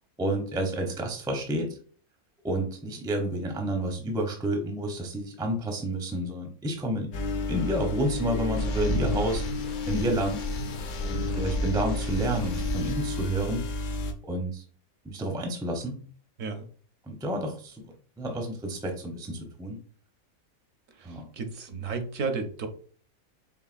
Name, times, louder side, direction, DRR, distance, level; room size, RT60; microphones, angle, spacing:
voice 1, 0.2-1.8 2.4-7.1 7.5-9.4 9.9-10.4 11.0-13.7 14.2-14.6 15.0-16.0 17.1-17.8 18.2-19.8 21.0-21.3, right 1 dB, 5° right, 0.4 m, -30 dB
sound 1, 7.1-14.1, left 2 dB, 70° left, 1.0 m, -31 dB
sound 2, 8.6-13.0, left 1 dB, 55° left, 0.6 m, -35 dB
voice 2, 21.4-22.7, right 4 dB, 70° right, 1.0 m, -32 dB
4.8 x 3.1 x 2.4 m
omnidirectional pair, 1.4 m